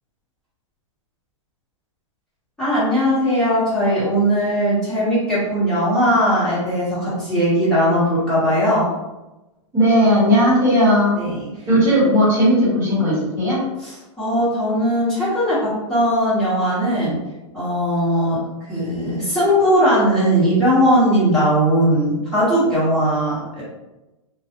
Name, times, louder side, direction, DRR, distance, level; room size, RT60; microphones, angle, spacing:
voice 1, 2.6-8.9 11.1-11.5 13.8-17.2 17.5-18.4 18.7-23.6, equal, 5° left, -13 dB, 1.2 m, -19 dB
voice 2, 9.7-11.2 11.7-13.6, equal, 15° right, -9 dB, 1.2 m, -16 dB
2.3 x 2.2 x 2.9 m, 1.0 s
supercardioid pair, 160°, 16 cm